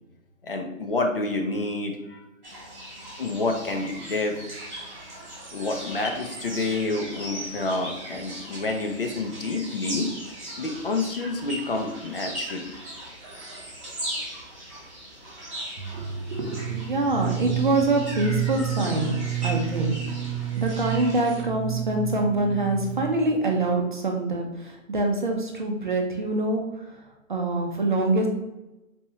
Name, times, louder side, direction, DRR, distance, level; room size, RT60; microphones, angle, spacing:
voice 1, 0.4-2.2 3.2-4.4 5.5-10.1 10.6-12.8, left 2 dB, 45° left, 3 dB, 0.6 m, -28 dB
sound 1, 2.4-21.4, right 1 dB, 5° right, 0.8 m, -39 dB
sound 2, 15.8-23.4, right 10 dB, 75° right, 0.9 m, -31 dB
voice 2, 15.9-19.1 19.4-20.3 20.6-26.8 27.3-28.3, right 2 dB, 40° right, 1 dB, 0.6 m, -25 dB
4.2 x 3.5 x 2.9 m, 0.98 s
hypercardioid pair, 170°, 40 cm